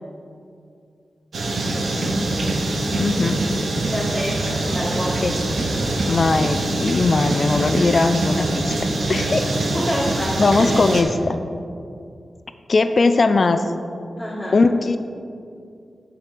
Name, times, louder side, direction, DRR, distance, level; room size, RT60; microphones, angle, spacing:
sound 1, 1.3-11.0, right 2 dB, 80° right, 1.0 m, -24 dB
voice 1, 1.4-2.2 3.8-5.2 9.2-9.3 9.7-10.8 14.2-14.6, equal, 15° left, -9 dB, 2.0 m, -28 dB
voice 2, 3.0-3.4 5.2-5.3 6.1-8.7 9.1-9.5 10.4-11.4 12.7-13.6 14.5-15.0, left 3 dB, 55° left, 9 dB, 0.4 m, -19 dB
7.2 x 6.1 x 5.1 m, 2.4 s
cardioid pair, 55°, 0 cm